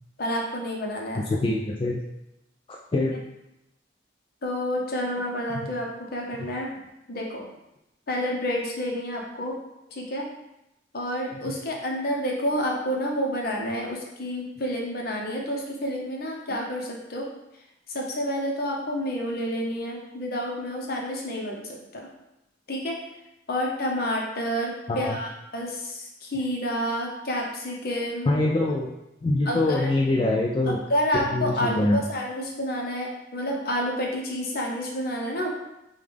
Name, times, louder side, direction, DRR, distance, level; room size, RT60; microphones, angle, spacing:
voice 1, 0.2-1.4 3.0-3.1 4.4-6.7 7.1-7.5 8.1-9.5 9.9-10.2 10.9-17.3 17.9-22.1 22.7-22.9 23.5-28.4 29.4-29.9 30.7-35.5, equal, 55° left, -1 dB, 0.8 m, -29 dB
voice 2, 1.2-2.0 2.7-3.1 11.5-11.6 24.9-25.2 28.3-28.9 29.2-30.8 31.3-32.0, left 2 dB, 30° left, -3 dB, 0.3 m, -24 dB
5.2 x 2.3 x 3.4 m, 0.90 s
head